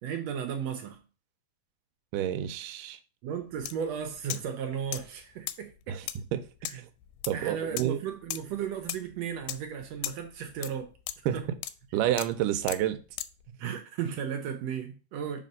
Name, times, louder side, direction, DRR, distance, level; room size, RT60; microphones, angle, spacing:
voice 1, 0.0-1.0 3.2-6.0 6.7-6.8 7.3-10.9 11.3-11.4 13.5-15.4, right 8 dB, 70° right, 1.7 m, -35 dB
voice 2, 2.1-3.0 5.9-6.1 6.3-6.4 6.7-6.9 7.3-8.0 11.3-11.4 11.9-13.0, right 12 dB, 85° right, 2.2 m, -29 dB
sound 1, 3.6-3.7 4.0-4.5 4.9-13.4, left 14 dB, 80° left, 2.0 m, -37 dB
6.1 x 4.2 x 5.3 m
omnidirectional pair, 3.7 m